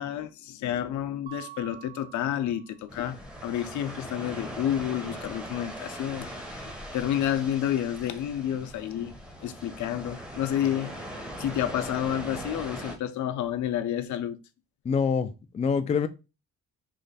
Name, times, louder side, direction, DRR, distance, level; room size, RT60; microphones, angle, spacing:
voice 1, 0.0-3.2 3.4-9.1 9.4-10.9 11.4-14.4, left 11 dB, 70° left, 0.6 m, -30 dB
Mallet percussion, 1.3-3.1, right 14 dB, 30° right, 0.9 m, -47 dB
sound 1, 2.9-13.0, equal, 5° right, 0.8 m, -40 dB
voice 2, 14.8-16.1, left 6 dB, 25° left, 0.3 m, -26 dB
3.2 x 2.5 x 3.9 m
cardioid pair, 90°, 30 cm